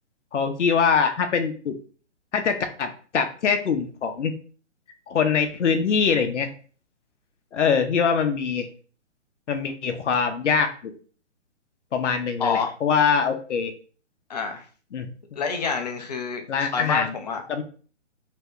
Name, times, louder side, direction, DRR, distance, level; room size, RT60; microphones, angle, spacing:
voice 1, 0.3-1.7 2.3-4.3 5.1-6.5 7.5-8.7 9.5-10.7 11.9-13.7 14.9-15.1 16.5-17.1 17.5-17.6, left 6 dB, 70° left, 7 dB, 0.7 m, -23 dB
voice 2, 12.4-12.7 14.3-14.7 15.3-17.4, left 5 dB, 35° left, 5 dB, 0.5 m, -27 dB
2.8 x 2.1 x 3.5 m, 0.40 s
figure-of-eight pair, 140°, 37 cm